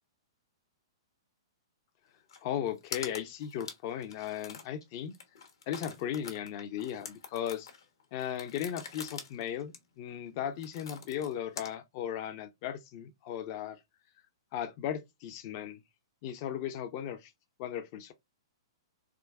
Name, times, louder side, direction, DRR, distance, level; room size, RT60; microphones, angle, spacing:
sound 1, 2.3-2.4 2.7-4.8 5.1-11.7, left 6 dB, 70° left, 0.9 m, -45 dB
voice 1, 2.4-5.1 5.7-7.7 8.1-13.8 14.5-15.8 16.2-17.3 17.6-18.1, left 10 dB, 45° left, 0.5 m, -36 dB
3.6 x 2.2 x 2.2 m
figure-of-eight pair, 115°, 2 cm